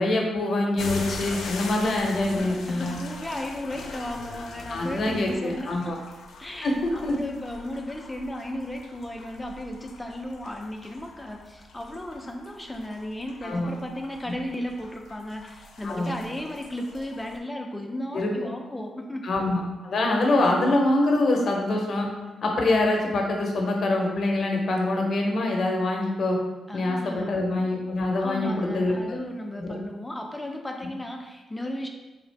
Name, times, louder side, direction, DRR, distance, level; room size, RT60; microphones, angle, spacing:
voice 1, 0.0-3.0 4.7-6.0 6.6-7.2 13.4-13.7 15.8-16.1 18.1-18.3 19.2-22.1 22.4-26.4 26.7-28.9 29.6-29.7, left 2 dB, 50° left, 1 dB, 0.7 m, -25 dB
sound 1, 0.8-17.4, left 3 dB, 90° left, 0.5 m, -42 dB
voice 2, 1.8-5.9 6.4-19.2 20.3-20.4 26.7-27.4 28.2-31.9, left 1 dB, 10° left, 2 dB, 0.4 m, -35 dB
3.3 x 2.4 x 4.4 m, 1.2 s
wide cardioid pair, 135°, 0 cm